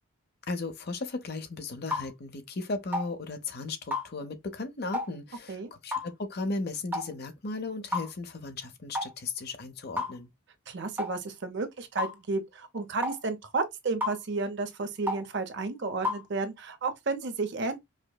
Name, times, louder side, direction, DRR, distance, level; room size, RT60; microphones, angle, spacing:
voice 1, 0.5-10.3, left 3 dB, 50° left, 0.6 m, -36 dB
sound 1, 1.9-2.1 2.9-3.1 3.9-4.1 4.9-5.1 5.9-6.1 6.9-7.1 7.9-8.1 8.9-9.1 10.0-10.2 11.0-11.1 12.0-12.1 13.0-13.2 14.0-14.2 15.1-15.2 16.0-16.2, left 2 dB, 10° right, 1.0 m, -31 dB
voice 2, 10.7-17.8, right 3 dB, 55° right, 0.7 m, -32 dB
5.0 x 2.1 x 2.2 m
head